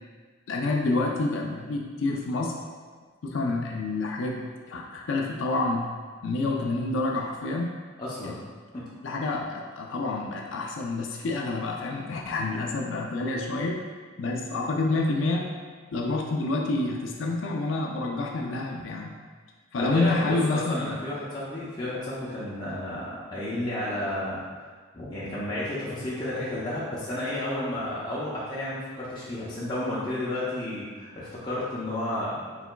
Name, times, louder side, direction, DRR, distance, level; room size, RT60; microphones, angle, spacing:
voice 1, 0.5-2.6 3.2-5.9 6.2-7.8 8.2-8.4 9.0-13.8 14.2-15.5 15.9-19.1 19.7-20.9, left 2 dB, 75° left, 0 dB, 0.4 m, -28 dB
voice 2, 8.0-8.4 8.7-8.8 19.8-24.4 24.9-32.4, left 1 dB, 20° left, -9 dB, 0.6 m, -32 dB
4.5 x 4.1 x 2.2 m, 1.5 s
head